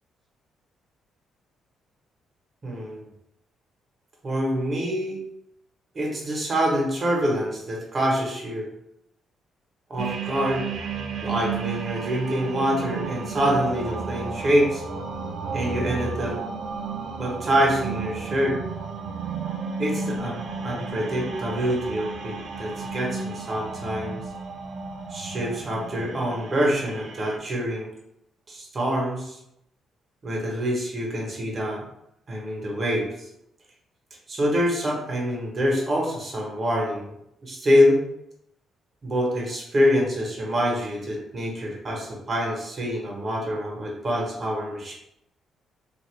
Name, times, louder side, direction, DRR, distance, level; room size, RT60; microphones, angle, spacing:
voice 1, 2.6-3.0 4.2-5.2 5.9-8.7 9.9-10.6 11.2-14.8 15.5-16.3 17.2-18.6 19.8-20.4 20.6-24.2 25.1-27.9 28.5-29.4 30.2-31.8 32.3-33.3 34.3-37.1 37.4-38.0 39.0-44.9, equal, 40° right, -2 dB, 1.0 m, -25 dB
sound 1, 10.0-27.4, right 5 dB, 65° right, 0.4 m, -33 dB
2.7 x 2.4 x 3.1 m, 0.80 s
cardioid pair, 90°, 0 cm